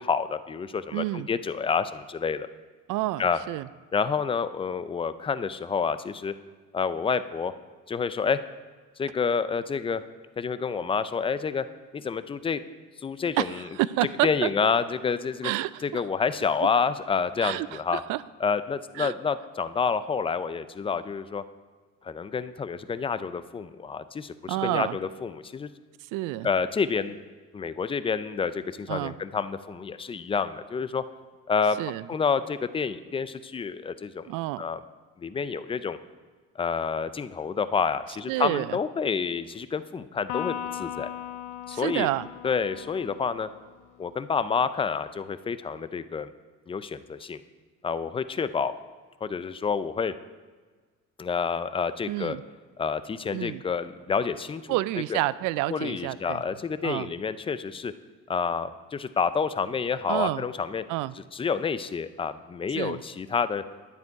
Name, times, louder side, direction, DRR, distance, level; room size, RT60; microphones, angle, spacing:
voice 1, 0.0-2.5 3.2-3.4 3.9-6.3 6.7-7.5 7.9-8.4 9.0-10.0 10.4-11.7 11.9-12.6 13.0-13.7 14.2-15.5 15.8-18.0 18.4-21.4 22.0-25.7 26.4-27.2 27.5-31.0 31.5-31.8 32.1-34.3 34.6-34.8 35.2-36.0 36.6-41.1 41.7-42.1 42.4-43.5 44.0-46.3 46.7-47.4 47.8-48.7 49.2-50.1 51.2-52.4 52.8-54.6 55.1-55.2 55.7-57.9 58.3-60.8 61.3-63.6, left 5 dB, 20° left, 13 dB, 0.4 m, -28 dB
voice 2, 0.9-1.3 2.9-3.7 13.4-14.7 15.4-16.0 17.4-18.2 19.0-19.1 24.5-25.0 26.1-26.5 28.9-29.2 31.8-32.1 34.3-34.6 38.3-38.8 41.7-42.3 52.1-52.4 53.3-53.6 54.7-56.4 56.8-57.1 60.1-60.4 60.9-61.1 62.8-63.0, right 17 dB, 85° right, 18 dB, 0.5 m, -29 dB
Electric guitar, 40.3-43.8, left 10 dB, 85° left, 0.6 m, -37 dB
11.0 x 9.5 x 4.6 m, 1.4 s
cardioid pair, 125°, 31 cm